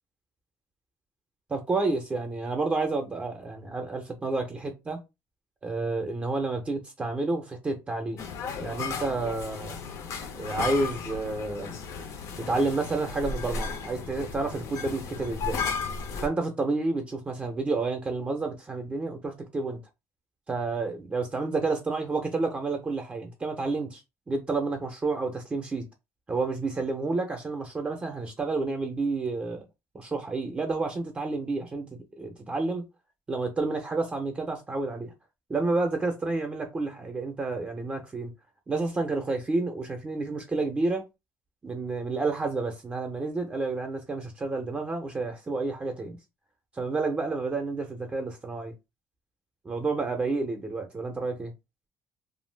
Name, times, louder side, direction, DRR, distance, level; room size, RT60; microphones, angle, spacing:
voice 1, 1.5-5.0 5.6-8.2 8.6-9.8 10.3-11.7 12.4-15.6 16.2-19.8 20.5-24.0 24.3-25.8 26.3-29.7 29.9-32.8 33.3-35.1 35.5-38.3 38.7-41.1 41.6-46.2 46.8-48.7 49.6-51.5, right 3 dB, 20° right, 0.5 m, -30 dB
sound 1, 8.2-16.3, left 5 dB, 60° left, 0.6 m, -35 dB
2.5 x 2.2 x 3.2 m
cardioid pair, 150°, 6 cm